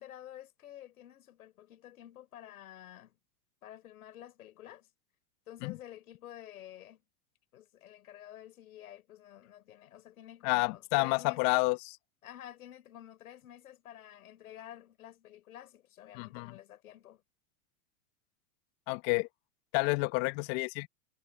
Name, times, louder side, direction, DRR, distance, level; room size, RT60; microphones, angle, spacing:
voice 1, 0.0-3.2 3.6-4.9 5.5-7.0 7.5-11.6 12.2-17.2, left 12 dB, 75° left, 5.9 m, -50 dB
voice 2, 10.4-11.8 16.1-16.5 18.9-19.3 19.7-20.9, left 27 dB, 50° left, 1.5 m, -29 dB
hypercardioid pair, 115°, 43 cm